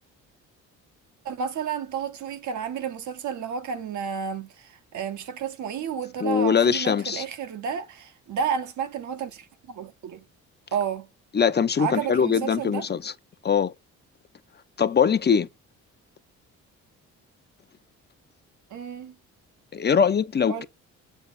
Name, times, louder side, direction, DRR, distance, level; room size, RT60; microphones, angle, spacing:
voice 1, 1.2-10.2 10.7-11.1 11.8-12.9 18.7-19.2 20.5-20.7, right 7 dB, 70° right, 1.4 m, -31 dB
voice 2, 6.2-7.2 11.3-13.1 13.4-13.7 14.8-15.5 19.7-20.6, left 6 dB, 35° left, 0.7 m, -22 dB
7.8 x 3.5 x 4.1 m
cardioid pair, 90°, 30 cm